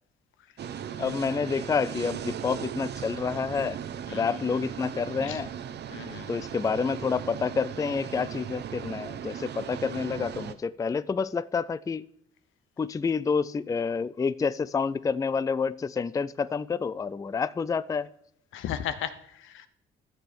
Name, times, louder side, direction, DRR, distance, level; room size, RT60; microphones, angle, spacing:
sound 1, 0.6-10.5, right 9 dB, 60° right, 0.8 m, -37 dB
voice 1, 1.0-3.8 4.1-5.5 6.3-12.1 12.8-18.1, left 5 dB, 15° left, 0.4 m, -28 dB
voice 2, 5.9-6.3 18.5-19.7, left 10 dB, 80° left, 0.9 m, -35 dB
13.5 x 6.9 x 4.3 m
cardioid pair, 90°, 20 cm